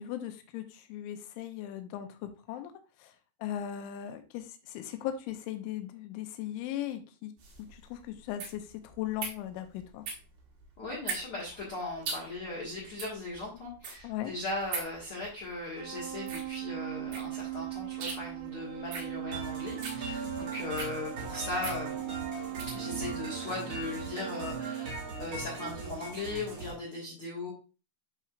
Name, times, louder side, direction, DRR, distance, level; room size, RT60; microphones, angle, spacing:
voice 1, 0.0-2.7 3.0-3.1 3.4-7.3 7.7-10.1 14.0-14.3 20.4-20.5, left 11 dB, 85° left, 7 dB, 3.1 m, -38 dB
sound 1, 7.4-22.8, right 4 dB, 60° right, 2.4 m, -42 dB
voice 2, 10.8-22.0 22.7-27.5, left 2 dB, 60° left, -5 dB, 1.4 m, -38 dB
sound 2, 15.8-24.9, right 16 dB, 75° right, 2.7 m, -39 dB
sound 3, 19.3-26.7, right 2 dB, 40° right, 1.9 m, -40 dB
11.0 x 4.5 x 2.4 m, 0.32 s
omnidirectional pair, 5.4 m